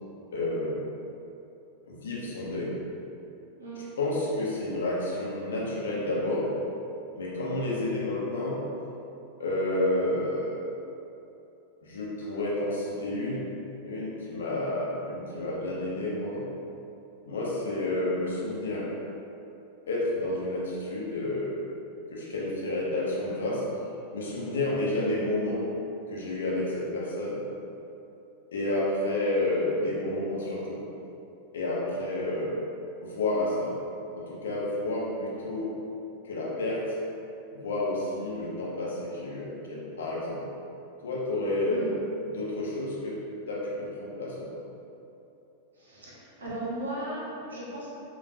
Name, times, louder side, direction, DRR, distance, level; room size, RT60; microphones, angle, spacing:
voice 1, 0.3-0.8 1.8-2.8 4.0-6.6 7.1-8.7 9.4-10.7 11.8-13.5 13.8-16.4 17.2-18.9 19.9-21.6 22.1-23.7 24.1-25.7 26.1-27.4 28.5-30.8 31.5-32.6 33.0-33.8 34.1-35.9 36.2-37.0 37.5-40.5 41.0-42.0 42.3-44.6, left 1 dB, 65° left, -5 dB, 0.8 m, -30 dB
voice 2, 24.8-25.1 41.6-42.0 45.7-47.9, right 1 dB, 70° right, -6 dB, 1.0 m, -37 dB
5.2 x 2.5 x 2.7 m, 2.8 s
figure-of-eight pair, 90°, 0 cm